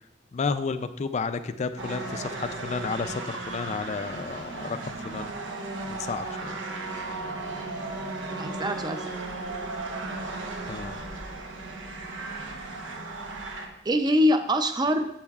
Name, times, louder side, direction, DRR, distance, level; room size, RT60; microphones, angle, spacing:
voice 1, 0.3-5.3 5.9-6.6 10.7-11.0, left 4 dB, 35° left, 11 dB, 0.4 m, -32 dB
sound 1, 1.8-13.7, right 2 dB, 90° right, 1.0 m, -35 dB
voice 2, 8.3-9.2 13.8-15.1, equal, 20° right, 8 dB, 0.5 m, -24 dB
9.9 x 7.1 x 2.4 m, 0.82 s
head